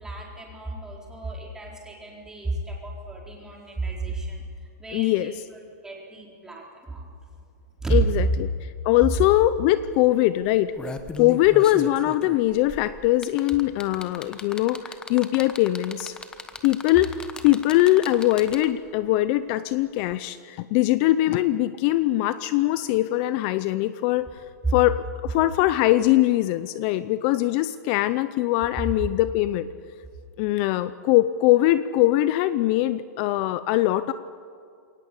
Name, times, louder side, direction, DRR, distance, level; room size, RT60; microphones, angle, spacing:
voice 1, 0.0-4.4 4.8-5.3 5.8-7.0 7.8-8.0, right 2 dB, 5° right, -2 dB, 4.2 m, -33 dB
voice 2, 4.9-5.4 7.9-10.7 11.2-16.2 16.6-17.2 17.4-24.3 24.7-29.7 30.4-34.1, left 15 dB, 35° left, 14 dB, 0.6 m, -22 dB
sound 1, 9.7-9.9 10.5-18.9 20.1-20.2, left 4 dB, 10° left, 1.1 m, -38 dB
22.0 x 18.5 x 8.6 m, 2.4 s
hypercardioid pair, 150°, 9 cm